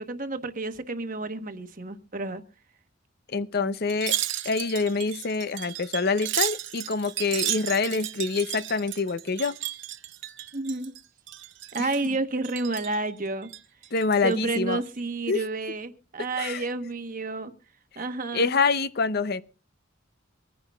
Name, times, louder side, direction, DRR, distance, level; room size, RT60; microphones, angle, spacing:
voice 1, 0.0-2.4 10.5-10.9 11.7-13.5 14.2-17.5 18.0-18.5, right 3 dB, 40° right, 1.1 m, -30 dB
voice 2, 3.3-4.1 4.4-9.6 11.8-11.9 13.9-14.8 15.3-15.4 16.4-16.6 18.3-19.4, left 4 dB, 50° left, 0.6 m, -26 dB
Wind chime, 3.9-11.0 11.3-12.1 12.4-13.0 13.4-14.3 14.7-14.9, right 13 dB, 60° right, 0.8 m, -33 dB
24.0 x 10.0 x 2.3 m
head